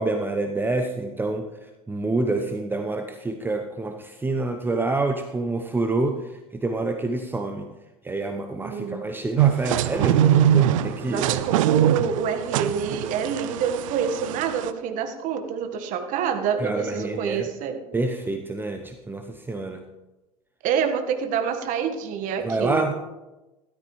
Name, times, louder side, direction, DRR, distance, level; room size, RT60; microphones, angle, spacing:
voice 1, 0.0-1.5 1.9-7.7 8.0-11.3 16.6-17.5 17.9-19.8 22.4-22.9, right 2 dB, 10° right, 6 dB, 0.8 m, -27 dB
voice 2, 8.6-9.2 11.1-17.8 20.6-22.9, right 7 dB, 45° right, 7 dB, 1.5 m, -27 dB
sound 1, 9.4-14.7, right 10 dB, 65° right, 0.6 m, -22 dB
13.5 x 13.0 x 3.2 m, 1.1 s
hypercardioid pair, 85°, 18 cm